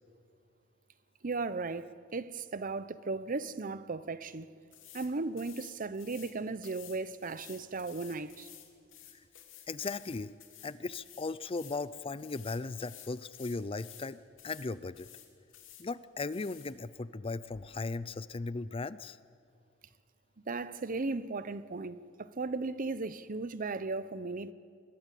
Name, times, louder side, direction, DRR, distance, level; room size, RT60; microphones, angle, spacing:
voice 1, 1.2-4.5 4.9-8.5 20.5-24.5, right 3 dB, 45° right, 0.7 m, -36 dB
sound 1, 4.7-5.1 5.4-6.3 6.6-11.8 12.1-14.1 14.4-14.7 14.9-15.9 16.3-16.7, left 11 dB, 80° left, 3.0 m, -53 dB
voice 2, 9.7-10.3 10.6-14.2 14.4-15.1 15.8-19.2, left 3 dB, 30° left, 0.5 m, -37 dB
23.0 x 21.0 x 8.3 m
head